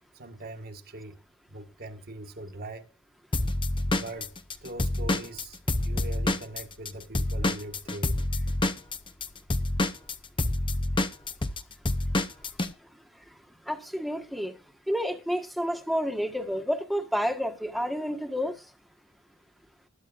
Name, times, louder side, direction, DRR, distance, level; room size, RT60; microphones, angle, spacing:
voice 1, 0.1-1.2 1.5-2.9 3.9-4.3 4.6-5.6 5.8-8.2, right 1 dB, 50° right, 1.5 m, -41 dB
Drum kit / Drum, 3.3-6.9 7.1-12.7, left 2 dB, 25° left, 0.7 m, -27 dB
voice 2, 13.7-14.5 14.9-18.6, equal, ahead, 1.4 m, -29 dB
20.5 x 10.0 x 2.5 m
head